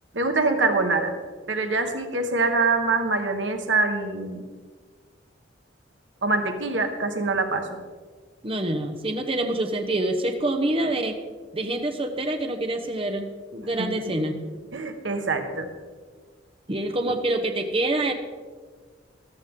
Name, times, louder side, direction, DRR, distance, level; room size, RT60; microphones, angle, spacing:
voice 1, 0.1-1.2 1.5-4.4 6.2-7.8 13.8-13.9 14.7-15.7 17.1-17.2, right 3 dB, 75° right, 5 dB, 1.4 m, -24 dB
voice 2, 8.4-11.2 11.5-14.4 16.7-18.1, right 1 dB, 30° right, 5 dB, 0.9 m, -26 dB
14.0 x 13.0 x 3.7 m, 1.5 s
head